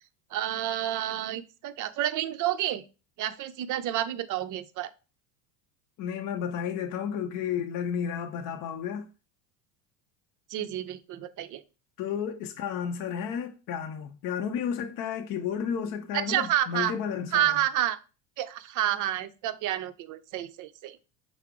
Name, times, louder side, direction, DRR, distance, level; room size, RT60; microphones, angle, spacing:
voice 1, 0.3-2.8 3.2-4.9 10.5-11.6 16.1-16.9 17.3-18.0 18.4-21.0, right 12 dB, 40° right, 0.5 m, -29 dB
voice 2, 6.0-9.1 12.0-17.6, left 8 dB, 40° left, 0.5 m, -32 dB
5.7 x 2.0 x 4.7 m
supercardioid pair, 100°, 49 cm